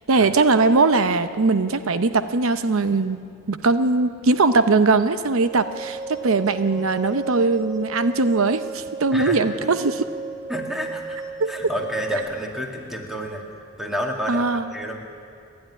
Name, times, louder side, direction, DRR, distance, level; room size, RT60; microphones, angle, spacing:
voice 1, 0.1-3.2 3.5-10.0 11.4-11.5 14.3-14.7, right 3 dB, 75° right, 10 dB, 0.7 m, -20 dB
sound 1, 5.4-12.2, right 4 dB, 20° right, 5.4 m, -34 dB
voice 2, 10.5-11.2 11.5-13.4 13.8-14.4 14.7-15.0, equal, ahead, 0 dB, 2.2 m, -29 dB
29.5 x 11.5 x 9.9 m, 2.4 s
head